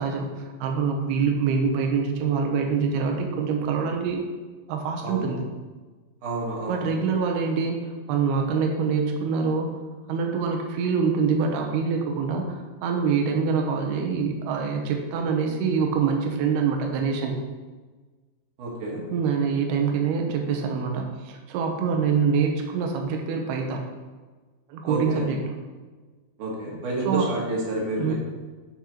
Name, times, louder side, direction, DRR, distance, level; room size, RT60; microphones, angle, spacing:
voice 1, 0.0-4.2 4.7-5.5 6.7-9.8 10.1-17.4 19.1-23.8 24.7-25.6 27.1-27.3 28.0-28.1, right 5 dB, 75° right, 2 dB, 2.6 m, -25 dB
voice 2, 5.0-5.3 6.2-6.9 18.6-19.0 24.9-25.3 26.4-28.1, right 2 dB, 60° right, -3 dB, 2.4 m, -29 dB
12.0 x 5.4 x 3.1 m, 1.3 s
omnidirectional pair, 5.1 m